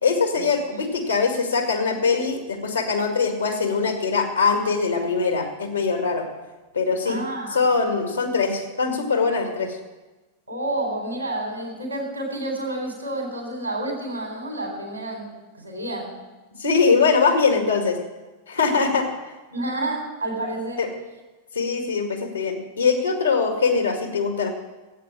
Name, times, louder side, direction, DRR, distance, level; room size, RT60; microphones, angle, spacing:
voice 1, 0.0-6.3 6.7-7.2 7.5-9.8 16.6-18.0 18.5-19.3 20.8-20.9 21.5-24.5, left 4 dB, 80° left, 4 dB, 2.1 m, -22 dB
voice 2, 7.0-7.6 10.5-16.1 19.5-20.8, right 1 dB, 85° right, 1 dB, 3.6 m, -29 dB
15.5 x 8.5 x 7.4 m, 1.2 s
figure-of-eight pair, 90°, 0 cm